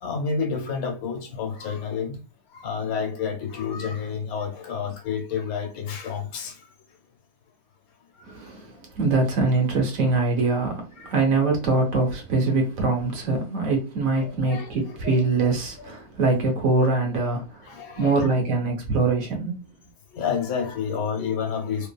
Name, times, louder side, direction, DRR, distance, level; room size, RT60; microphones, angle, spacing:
voice 1, 0.0-2.2 2.5-6.6 11.0-11.1 14.1-15.2 17.6-18.3 20.1-21.9, left 6 dB, 80° left, 1.2 m, -30 dB
voice 2, 8.2-19.6, right 3 dB, 70° right, 1.2 m, -23 dB
2.7 x 2.4 x 2.2 m
omnidirectional pair, 1.5 m